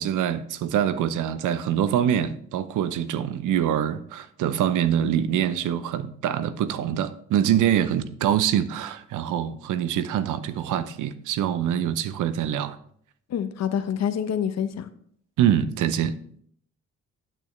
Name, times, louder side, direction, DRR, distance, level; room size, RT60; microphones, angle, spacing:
voice 1, 0.0-12.8 15.4-16.1, right 10 dB, 85° right, 0.7 m, -24 dB
voice 2, 13.3-14.9, left 8 dB, 60° left, 0.9 m, -27 dB
8.9 x 8.8 x 3.2 m
cardioid pair, 90°, 30 cm